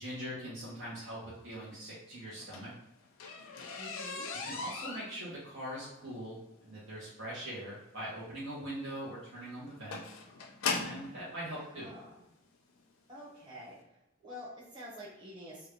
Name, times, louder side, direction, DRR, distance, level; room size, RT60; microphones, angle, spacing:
voice 1, 0.0-2.7 4.4-6.4 6.6-10.0 10.8-11.9, right 1 dB, 70° right, -9 dB, 0.9 m, -42 dB
sound 1, 2.3-11.1 12.0-12.1 12.7-12.9 13.2-13.3 13.6-13.7, left 4 dB, 85° left, 0.6 m, -39 dB
voice 2, 3.8-4.3 11.7-12.1 13.1-13.8 14.2-15.7, equal, 20° right, -9 dB, 1.1 m, -47 dB
3.3 x 2.3 x 3.2 m, 0.88 s
head